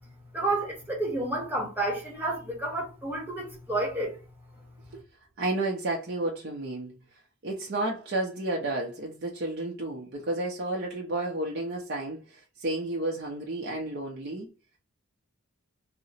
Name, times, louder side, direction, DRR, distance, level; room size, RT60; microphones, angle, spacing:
voice 1, 0.3-4.2, right 2 dB, 10° right, 0.9 m, -30 dB
voice 2, 5.4-7.0 7.4-14.5, right 2 dB, 50° right, 0.5 m, -31 dB
2.7 x 2.0 x 4.0 m
head